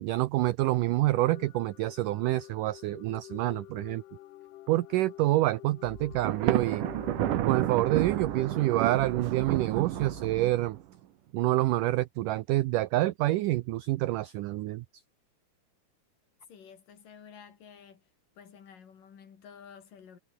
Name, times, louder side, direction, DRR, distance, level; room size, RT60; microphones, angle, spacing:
voice 1, 0.0-4.0 4.7-6.8 7.4-10.8 11.3-15.0, right 17 dB, 80° right, 1.9 m, -27 dB
sound 1, 1.1-8.9, left 15 dB, 90° left, 3.3 m, -49 dB
sound 2, 5.8-10.8, left 2 dB, 20° left, 7.9 m, -49 dB
Thunder, 6.2-10.8, right 13 dB, 65° right, 2.5 m, -30 dB
voice 2, 16.5-18.1 18.4-20.2, left 7 dB, 60° left, 4.5 m, -51 dB
omnidirectional pair, 4.5 m